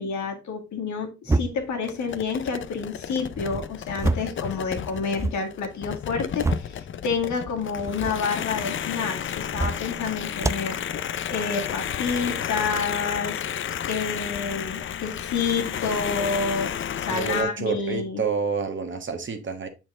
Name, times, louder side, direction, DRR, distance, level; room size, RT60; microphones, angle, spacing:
voice 1, 0.0-10.8 11.3-13.4 13.9-16.7 17.0-18.2, left 5 dB, 70° left, 2.0 m, -29 dB
sound 1, 1.3-1.8 3.3-4.4 4.8-5.4 6.0-6.8 7.7-8.2 9.4-9.9 10.4-10.7, right 2 dB, 10° right, 0.3 m, -28 dB
sound 2, 1.8-17.4, left 9 dB, 40° left, 0.5 m, -32 dB
voice 2, 17.1-19.7, right 5 dB, 40° right, 1.4 m, -28 dB
7.4 x 4.5 x 3.6 m
cardioid pair, 90°, 30 cm